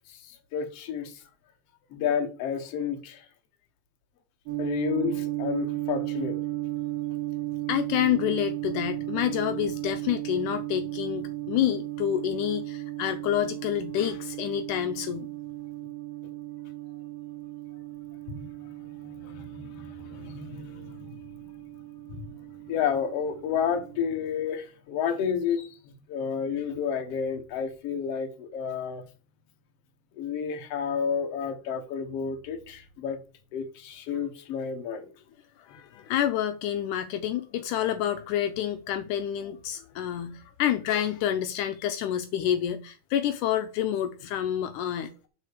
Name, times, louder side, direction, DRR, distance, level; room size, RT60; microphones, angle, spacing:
voice 1, 0.1-1.1 1.9-3.2 4.6-6.4 18.3-18.5 19.0-21.2 22.1-22.3 22.7-29.0 30.2-33.2 33.5-35.1, left 7 dB, 60° left, 1.7 m, -31 dB
sound 1, 4.5-24.0, right 16 dB, 80° right, 3.2 m, -35 dB
voice 2, 7.7-15.3 35.6-45.1, left 11 dB, 90° left, 1.8 m, -28 dB
9.6 x 4.3 x 6.5 m
omnidirectional pair, 4.4 m